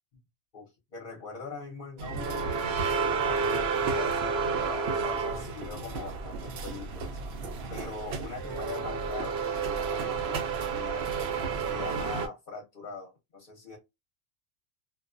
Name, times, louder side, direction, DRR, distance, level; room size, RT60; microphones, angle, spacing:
voice 1, 0.5-2.5 2.9-7.2 7.7-11.1 11.6-13.8, left 4 dB, 45° left, 0.8 m, -42 dB
sound 1, 2.0-12.3, right 5 dB, 65° right, 0.7 m, -31 dB
2.4 x 2.2 x 2.4 m
omnidirectional pair, 1.3 m